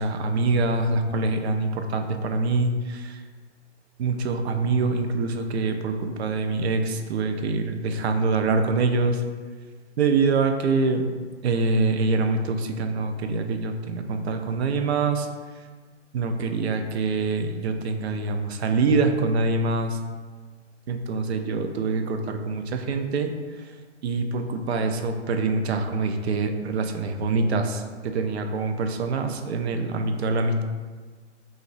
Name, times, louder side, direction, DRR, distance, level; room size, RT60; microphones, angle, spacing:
voice 1, 0.0-3.2 4.0-9.2 10.0-11.0 11.4-15.3 16.1-20.0 20.9-23.8 24.0-30.6, right 3 dB, 65° right, 6 dB, 0.5 m, -25 dB
3.0 x 2.5 x 4.0 m, 1.5 s
hypercardioid pair, 145°, 36 cm